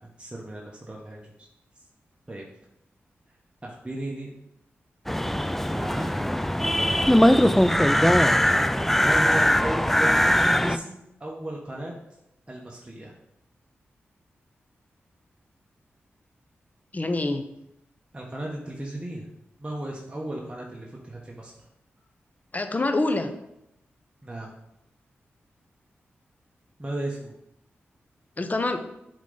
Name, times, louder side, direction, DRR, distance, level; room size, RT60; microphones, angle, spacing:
voice 1, 0.0-1.5 2.3-2.4 3.6-4.3 5.7-6.2 7.4-8.1 8.9-11.9 12.5-13.1 18.1-19.3 19.6-21.5 24.2-24.5 26.8-27.3, right 1 dB, 25° right, -2 dB, 1.1 m, -35 dB
sound 1, 5.1-10.8, equal, 5° left, 0.3 m, -20 dB
voice 2, 16.9-17.4 22.5-23.3 28.4-28.8, left 2 dB, 35° left, 7 dB, 0.7 m, -25 dB
7.3 x 3.8 x 3.9 m, 0.84 s
cardioid pair, 50°, 5 cm